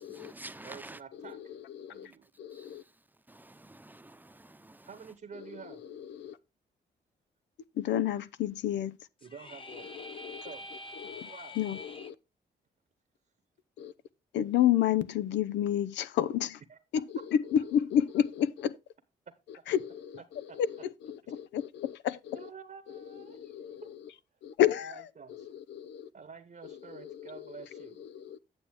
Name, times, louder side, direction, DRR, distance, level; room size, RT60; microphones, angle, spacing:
voice 1, 0.0-1.0 2.5-2.7 3.3-4.9, right 2 dB, 10° right, 0.8 m, -49 dB
voice 2, 0.6-1.5 1.9-2.3 4.8-5.8 9.2-9.9 10.4-10.7 11.3-11.6 16.7-16.8 19.3-19.4 20.1-20.6 22.3-23.9 24.9-25.5 26.1-28.0, right 6 dB, 50° right, 1.1 m, -49 dB
voice 3, 1.2-2.1 2.4-2.8 5.3-6.4 7.7-9.0 9.7-10.5 11.0-11.3 11.6-12.1 13.8-13.9 14.3-16.6 16.9-18.8 19.7-22.5 22.9-24.1 24.4-26.1 26.6-28.4, left 10 dB, 90° left, 0.6 m, -31 dB
sound 1, 9.2-12.1, left 2 dB, 30° left, 1.1 m, -46 dB
9.2 x 6.9 x 3.5 m
cardioid pair, 60°, 18 cm